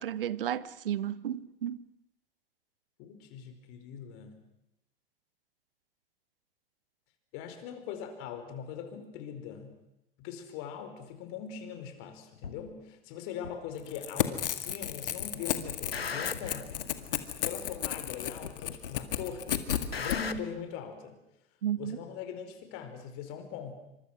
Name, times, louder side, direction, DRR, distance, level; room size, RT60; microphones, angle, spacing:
voice 1, 0.0-1.8 21.6-22.0, right 10 dB, 70° right, 17 dB, 1.2 m, -33 dB
voice 2, 3.0-4.4 7.3-9.7 10.2-16.8 17.4-21.2 21.8-23.7, left 7 dB, 45° left, 7 dB, 4.9 m, -41 dB
sound 1, 12.4-12.6 13.4-13.5 14.4-14.9 15.2-16.7 17.4-17.5 18.4-18.9 19.2-20.4, left 5 dB, 85° left, 1.4 m, -38 dB
Crackle / Tearing, 13.8-20.2, left 11 dB, 65° left, 2.0 m, -33 dB
28.0 x 25.5 x 6.1 m, 0.85 s
figure-of-eight pair, 90°, 29 cm